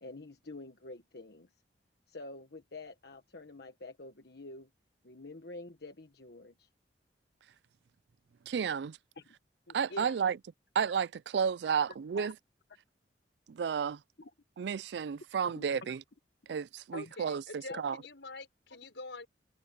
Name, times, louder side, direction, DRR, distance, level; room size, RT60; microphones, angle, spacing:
voice 1, 0.0-1.5 2.1-4.7 5.0-6.7 9.2-9.3 11.9-12.3 14.2-14.3 17.7-17.8, left 2 dB, 65° left, 1.4 m, -48 dB
voice 2, 8.5-9.0 9.7-10.4 10.7-12.3 13.5-14.0 14.6-16.0 16.5-18.0, right 7 dB, 65° right, 0.4 m, -32 dB
voice 3, 9.7-10.2 16.9-19.3, left 2 dB, 85° left, 5.4 m, -45 dB
open air
head